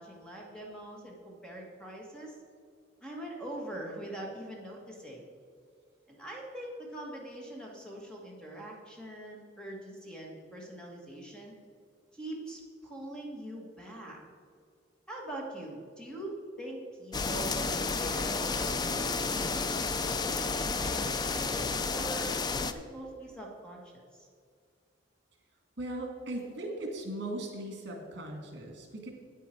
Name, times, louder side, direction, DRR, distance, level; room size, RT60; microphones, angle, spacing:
voice 1, 0.0-2.4 3.0-5.2 6.1-11.5 12.1-14.2 15.1-24.3, right 1 dB, 5° left, -2 dB, 1.5 m, -43 dB
sound 1, 17.1-22.7, left 4 dB, 20° left, 0.4 m, -31 dB
voice 2, 25.8-29.1, right 1 dB, 65° right, 2 dB, 1.9 m, -38 dB
9.2 x 9.2 x 4.5 m, 2.1 s
head